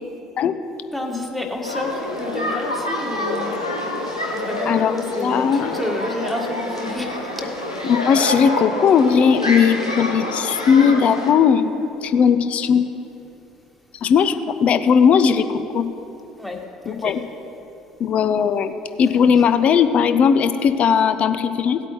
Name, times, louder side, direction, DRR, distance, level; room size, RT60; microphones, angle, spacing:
voice 1, 0.9-3.6 4.3-7.6 16.4-17.2 19.1-19.4, left 2 dB, 5° left, 1 dB, 1.7 m, -30 dB
pool ambient kids playing splash shower summer, 1.6-11.3, left 1 dB, 85° left, 1.0 m, -27 dB
voice 2, 4.7-5.8 7.8-12.9 14.0-15.9 16.9-17.2 18.0-18.7 19.0-21.8, left 7 dB, 45° left, 11 dB, 0.6 m, -18 dB
17.5 x 8.4 x 3.2 m, 2.9 s
figure-of-eight pair, 55°, 3 cm